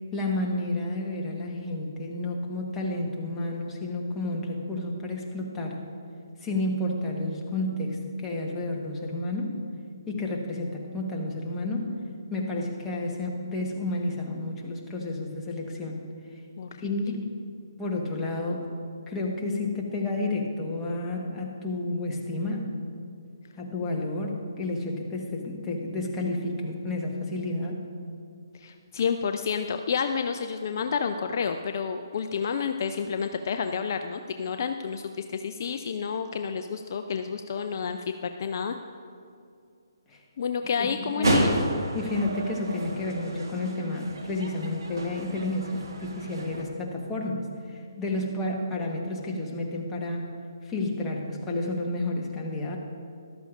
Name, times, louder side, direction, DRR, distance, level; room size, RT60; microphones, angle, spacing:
voice 1, 0.1-5.8 6.4-9.6 10.1-11.9 12.3-16.0 16.8-17.4 17.8-18.7 19.1-22.7 23.6-27.8 40.1-40.2 40.8-41.4 41.9-50.3 50.6-52.8, left 2 dB, 15° left, -1 dB, 1.3 m, -31 dB
voice 2, 28.6-38.8 40.4-41.7, left 6 dB, 50° left, 7 dB, 0.4 m, -29 dB
sound 1, 41.2-46.6, right 2 dB, 70° right, 1.4 m, -31 dB
14.0 x 12.0 x 2.5 m, 2.4 s
figure-of-eight pair, 145°, 2 cm